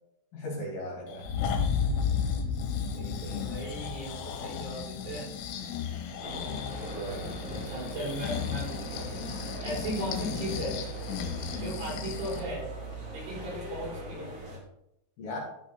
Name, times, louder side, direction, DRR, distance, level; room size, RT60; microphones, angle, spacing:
voice 1, 0.3-1.3 6.9-7.5 13.3-13.4 15.2-15.4, equal, 55° left, -2 dB, 4.0 m, -37 dB
Breathing, 1.1-12.5 12.9-13.0, left 8 dB, 75° left, 3.4 m, -37 dB
sound 1, 1.2-5.8, left 6 dB, 35° left, 1.8 m, -31 dB
voice 2, 2.9-5.3 7.5-9.1 9.6-10.8 11.6-12.6 13.1-14.4, right 1 dB, 80° right, -4 dB, 7.2 m, -37 dB
sound 2, 6.2-14.6, right 2 dB, 35° right, 3.4 m, -40 dB
13.5 x 6.1 x 4.1 m, 0.80 s
omnidirectional pair, 5.6 m